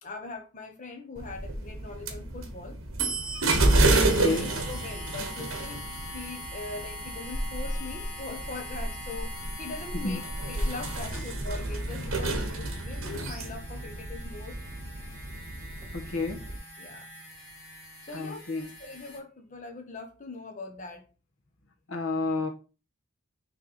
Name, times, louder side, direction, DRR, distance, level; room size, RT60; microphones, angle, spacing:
voice 1, 0.0-2.8 3.7-5.9 6.1-9.3 9.6-14.6 16.8-17.1 18.0-21.0, left 3 dB, 35° left, 1.0 m, -41 dB
sound 1, 1.2-16.6, right 2 dB, 65° right, 1.4 m, -30 dB
sound 2, 3.9-19.2, left 1 dB, 5° left, 2.6 m, -43 dB
voice 2, 4.1-4.5 9.9-10.2 15.9-16.4 18.1-18.7 21.9-22.5, left 3 dB, 65° left, 1.4 m, -31 dB
6.0 x 3.4 x 5.0 m
head